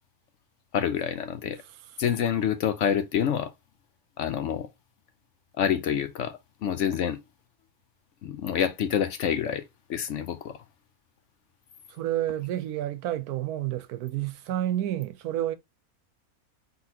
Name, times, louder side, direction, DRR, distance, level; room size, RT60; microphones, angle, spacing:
voice 1, 0.7-1.6 2.0-3.5 4.2-4.7 5.6-7.2 8.2-9.6 9.9-10.5, left 8 dB, 65° left, 0.8 m, -27 dB
voice 2, 11.9-15.6, right 12 dB, 90° right, 1.1 m, -30 dB
3.9 x 3.9 x 2.7 m
omnidirectional pair, 1.6 m